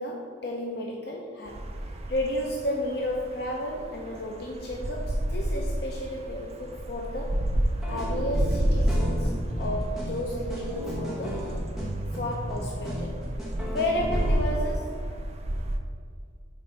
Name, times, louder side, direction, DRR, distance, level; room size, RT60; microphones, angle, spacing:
voice 1, 0.0-1.6 2.1-7.4 7.9-11.4 12.1-13.2 13.7-15.0, left 1 dB, 55° left, -1 dB, 0.6 m, -32 dB
sound 1, 1.5-15.8, right 1 dB, 30° right, 0.4 m, -31 dB
sound 2, 7.8-14.6, equal, ahead, 1.0 m, -34 dB
5.6 x 4.4 x 5.1 m, 2.2 s
head